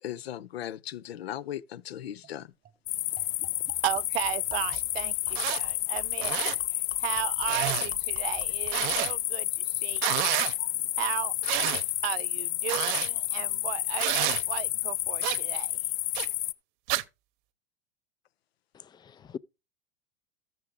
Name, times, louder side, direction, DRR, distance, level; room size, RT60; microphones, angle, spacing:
voice 1, 0.0-2.5 6.2-6.3 10.6-10.9, left 11 dB, 90° left, 0.8 m, -38 dB
sound 1, 2.2-2.3 2.6-2.8 3.2-9.2, right 10 dB, 30° right, 0.8 m, -50 dB
sound 2, 2.9-16.5, left 16 dB, 45° left, 0.7 m, -30 dB
voice 2, 3.8-6.4 7.0-10.4 11.0-11.3 12.0-15.7, right 17 dB, 75° right, 0.5 m, -35 dB
sound 3, 4.7-4.8 5.3-5.6 6.1-6.6 7.5-7.9 8.7-9.1 10.0-10.5 11.4-11.8 12.7-13.1 14.0-14.4 15.2-15.4 16.2-16.3 16.9-17.0, right 18 dB, 55° right, 0.8 m, -29 dB
voice 3, 18.7-19.4, left 7 dB, 15° left, 0.4 m, -42 dB
13.0 x 7.4 x 3.7 m
hypercardioid pair, 120°, 30 cm